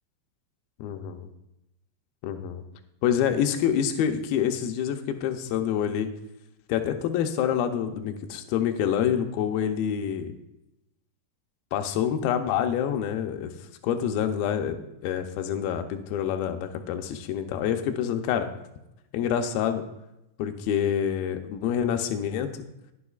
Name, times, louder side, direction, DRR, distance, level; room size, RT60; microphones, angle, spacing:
voice 1, 0.8-1.3 2.2-2.6 3.0-6.1 6.7-10.3 11.7-13.5 13.8-18.5 19.1-19.8 20.4-22.6, left 9 dB, 80° left, 6 dB, 2.2 m, -27 dB
18.0 x 7.0 x 2.4 m, 0.89 s
omnidirectional pair, 5.1 m